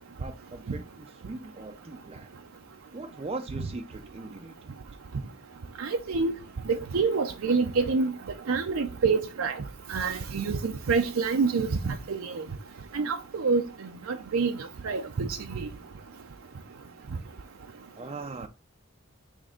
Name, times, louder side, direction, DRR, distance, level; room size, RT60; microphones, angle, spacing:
voice 1, 0.2-2.3 2.9-4.7 18.0-18.5, right 3 dB, 30° right, 0.4 m, -40 dB
voice 2, 5.8-6.3 6.7-8.1 8.5-9.6 9.9-12.4 12.9-13.6 14.1-14.5 14.8-15.3, right 4 dB, 80° right, 0.6 m, -26 dB
6.4 x 3.4 x 5.0 m
head